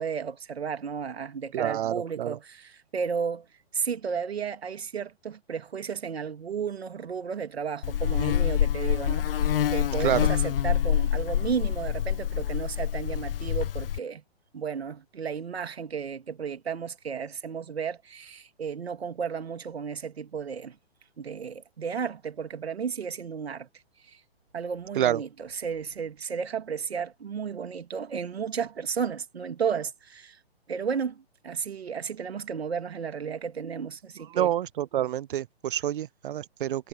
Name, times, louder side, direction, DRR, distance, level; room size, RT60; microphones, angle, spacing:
voice 1, 0.0-3.4 3.7-14.2 14.5-20.8 21.2-23.7 24.1-24.2 24.5-30.4 30.7-34.5, right 6 dB, 70° right, 2.5 m, -33 dB
voice 2, 1.5-2.4 10.0-10.2 25.0-25.2 34.3-36.9, right 11 dB, 55° right, 0.4 m, -28 dB
Buzz, 7.8-14.0, left 10 dB, 60° left, 0.6 m, -26 dB
hypercardioid pair, 135°, 32 cm